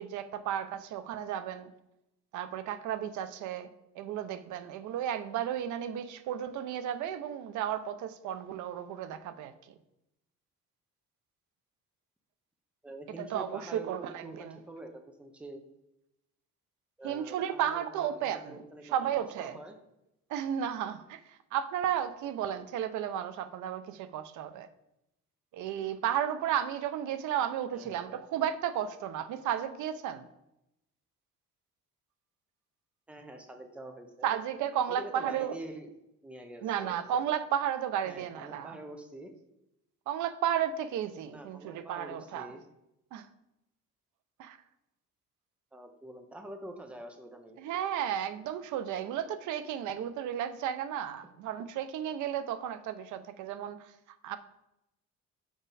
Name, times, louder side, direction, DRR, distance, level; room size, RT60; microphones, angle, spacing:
voice 1, 0.0-1.7 2.3-3.7 4.0-9.7 13.2-14.6 17.0-19.6 20.3-24.7 25.5-30.3 34.2-35.5 36.6-38.8 40.1-42.5 43.1-43.3 44.4-44.6 47.6-54.4, right 10 dB, 80° right, 11 dB, 0.6 m, -33 dB
voice 2, 12.8-15.6 17.0-19.1 19.4-19.7 27.7-28.2 33.1-34.3 34.9-35.9 36.2-37.0 38.0-39.3 41.3-42.6 45.7-47.6, right 1 dB, 5° right, 5 dB, 0.5 m, -46 dB
6.0 x 5.0 x 4.1 m, 0.86 s
cardioid pair, 175°, 29 cm